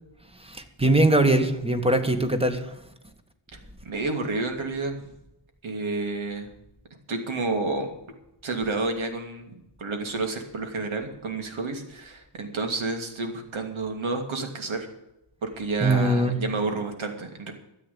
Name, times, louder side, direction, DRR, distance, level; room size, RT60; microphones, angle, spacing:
voice 1, 0.4-2.7 15.8-16.4, right 1 dB, 10° right, 8 dB, 1.7 m, -22 dB
voice 2, 3.8-5.1 5.6-6.5 7.1-7.9 8.4-14.9 15.4-17.5, right 3 dB, 70° right, 5 dB, 2.9 m, -30 dB
13.0 x 8.6 x 8.6 m, 0.88 s
wide cardioid pair, 115°, 49 cm